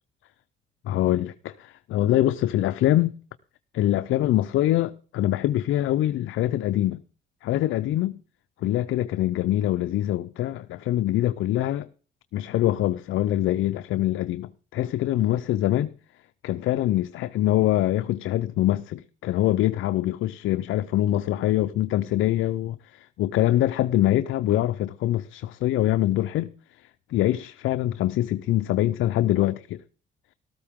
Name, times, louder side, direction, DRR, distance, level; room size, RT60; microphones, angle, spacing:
voice 1, 0.8-3.2 3.7-7.0 7.4-8.1 8.6-11.9 12.3-15.9 16.4-26.5 27.1-29.8, left 14 dB, 85° left, 0.6 m, -24 dB
13.5 x 13.5 x 3.7 m
cardioid pair, 90°, 20 cm